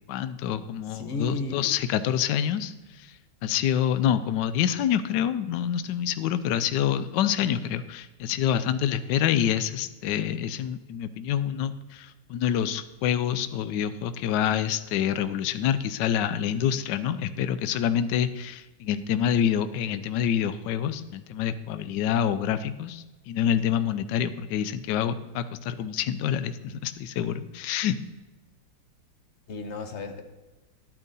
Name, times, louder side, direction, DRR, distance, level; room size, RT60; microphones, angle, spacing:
voice 1, 0.1-3.1 3.4-28.0, left 9 dB, 75° left, 13 dB, 1.2 m, -27 dB
voice 2, 0.9-1.8 29.5-30.2, left 3 dB, 50° left, 7 dB, 1.0 m, -33 dB
11.0 x 8.9 x 4.0 m, 1.1 s
omnidirectional pair, 2.0 m